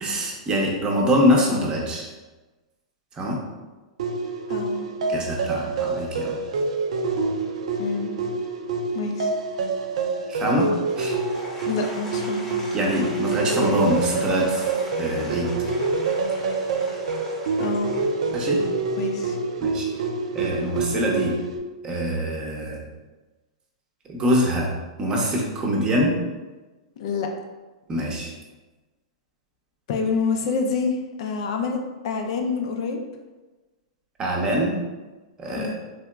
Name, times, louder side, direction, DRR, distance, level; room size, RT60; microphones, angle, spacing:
voice 1, 0.0-2.1 3.1-3.4 5.1-6.4 10.3-11.2 12.7-14.7 15.0-15.5 18.3-18.6 19.6-20.0 20.3-21.4 21.8-22.8 24.1-24.7 25.0-26.2 27.9-28.3 34.2-34.8 35.4-35.7, equal, 25° right, -1 dB, 0.7 m, -24 dB
sound 1, 4.0-21.6, right 3 dB, 75° right, 0.4 m, -27 dB
voice 2, 4.5-4.9 7.8-8.1 8.9-9.3 11.7-12.5 17.6-17.9 19.0-19.4 27.0-27.3 29.9-31.8 32.0-33.0 35.5-35.7, left 5 dB, 60° left, 3 dB, 0.4 m, -27 dB
Applause / Crowd, 10.7-18.9, equal, 10° left, 0.8 m, -41 dB
3.4 x 2.8 x 2.3 m, 1.2 s
hypercardioid pair, 120°, 3 cm